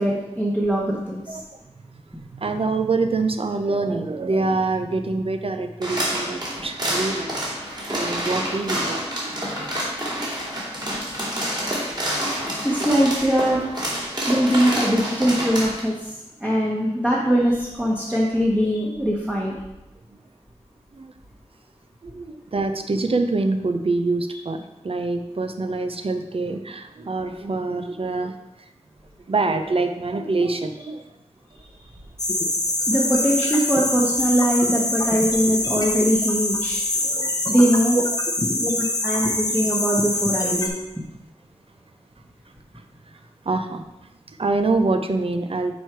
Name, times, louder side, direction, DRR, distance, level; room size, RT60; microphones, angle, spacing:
voice 1, 0.0-1.4 12.6-13.6 14.3-16.1 16.4-19.5 32.9-36.8 37.5-38.0 38.5-40.7, equal, 10° right, -5 dB, 1.2 m, -21 dB
voice 2, 1.9-7.4 7.9-10.3 14.3-14.4 20.9-21.1 22.0-28.4 29.3-31.1 37.0-37.5 37.9-38.0 43.4-43.8 44.3-45.7, right 3 dB, 50° right, 7 dB, 0.6 m, -25 dB
sound 1, 5.8-15.8, equal, 35° right, 2.5 m, -28 dB
sound 2, 32.2-40.7, left 2 dB, 30° left, 0.9 m, -24 dB
6.4 x 4.6 x 4.6 m, 0.94 s
wide cardioid pair, 70°, 12 cm